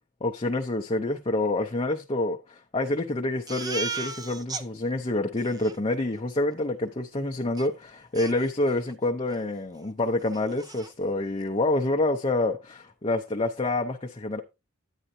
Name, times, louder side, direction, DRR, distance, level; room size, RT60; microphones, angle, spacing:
voice 1, 0.2-14.4, left 2 dB, 25° left, 0.6 m, -27 dB
Crying sobbing, 3.5-4.6 5.0-5.1 5.4-5.8 7.6-7.7 8.1-8.9 9.3-9.5 9.8-9.9 10.2-10.9, right 4 dB, 15° right, 0.4 m, -36 dB
9.9 x 8.9 x 2.6 m
head